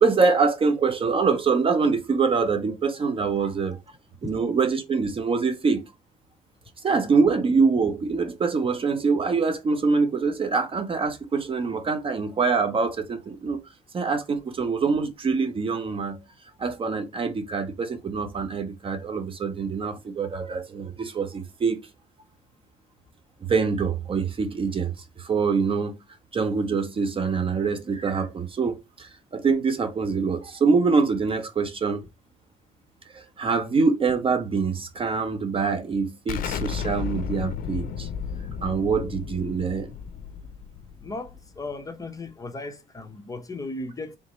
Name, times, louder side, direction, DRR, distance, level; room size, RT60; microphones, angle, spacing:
voice 1, 0.0-3.8 4.2-5.9 6.8-13.6 13.9-16.2 16.6-21.8 23.5-26.0 26.3-32.0 33.1-38.1 38.6-39.9, right 4 dB, 30° right, 0.7 m, -24 dB
Explosion, 36.3-41.7, left 7 dB, 55° left, 0.6 m, -33 dB
voice 2, 41.0-44.2, left 2 dB, 20° left, 0.8 m, -36 dB
3.5 x 2.9 x 4.1 m
cardioid pair, 110°, 17 cm